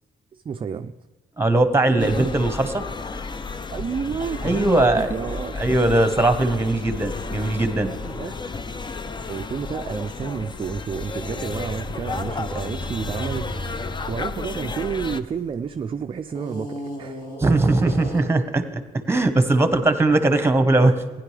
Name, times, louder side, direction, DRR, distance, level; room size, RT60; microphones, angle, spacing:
voice 1, 0.5-0.9 1.9-2.3 3.7-5.5 6.5-6.6 7.7-8.3 9.3-13.8 14.1-17.3 17.9-18.0, right 6 dB, 35° right, 8 dB, 0.4 m, -30 dB
voice 2, 1.4-2.8 4.4-5.1 5.5-7.9 17.4-18.8 19.1-21.0, right 2 dB, 15° right, 9 dB, 1.1 m, -20 dB
sound 1, 2.0-15.2, left 4 dB, 30° left, 0.5 m, -32 dB
sound 2, 10.8-15.7 16.3-18.5, right 1 dB, 70° left, 3.6 m, -36 dB
15.5 x 10.5 x 3.3 m, 1.3 s
cardioid pair, 85°, 15 cm